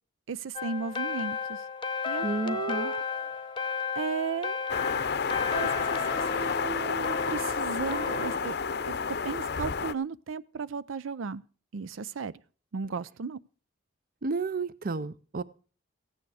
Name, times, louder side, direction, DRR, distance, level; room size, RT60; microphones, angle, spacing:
voice 1, 0.3-1.6 2.1-3.0 4.0-4.6 5.3-8.6 8.9-9.0 9.2-11.4 11.7-12.3 12.7-13.4, right 5 dB, 90° right, 0.5 m, -35 dB
sound 1, 0.5-8.4, left 5 dB, 25° left, 0.8 m, -34 dB
voice 2, 2.2-2.9 14.2-15.4, right 3 dB, 45° right, 0.6 m, -31 dB
sound 2, 4.7-9.9, left 5 dB, 55° left, 0.6 m, -30 dB
15.0 x 9.4 x 4.8 m
head